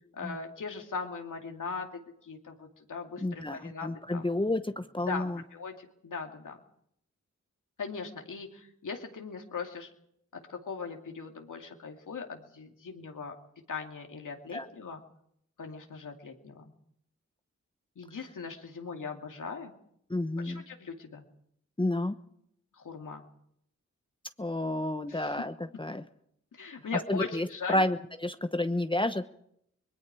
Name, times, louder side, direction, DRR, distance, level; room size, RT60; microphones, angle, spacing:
voice 1, 0.1-4.3 5.1-5.2 5.5-6.6 7.8-9.9 10.3-13.3 13.7-15.0 15.6-16.6 18.0-19.8 20.4-21.2 22.8-23.2 25.1-25.3 26.5-27.8, left 5 dB, 85° left, 2 dB, 2.6 m, -39 dB
voice 2, 3.2-5.4 14.5-14.7 20.1-20.6 21.8-22.2 24.4-26.0 27.1-29.3, left 1 dB, 15° left, 7 dB, 1.0 m, -30 dB
26.0 x 21.0 x 4.8 m, 0.73 s
cardioid pair, 45°, 31 cm